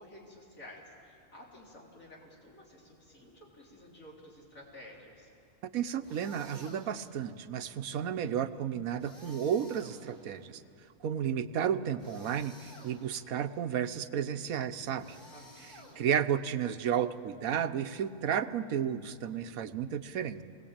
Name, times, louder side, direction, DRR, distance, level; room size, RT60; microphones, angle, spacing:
voice 1, 0.0-5.3 15.3-16.0, left 1 dB, 70° left, -4 dB, 4.0 m, -52 dB
voice 2, 5.7-10.6 11.0-15.2 15.6-20.4, right 8 dB, 85° right, 10 dB, 1.3 m, -32 dB
sound 1, 6.0-7.2 9.0-10.4 12.0-13.3 15.0-16.4, left 1 dB, 30° left, 3.2 m, -54 dB
27.5 x 21.0 x 8.8 m, 2.5 s
omnidirectional pair, 1.4 m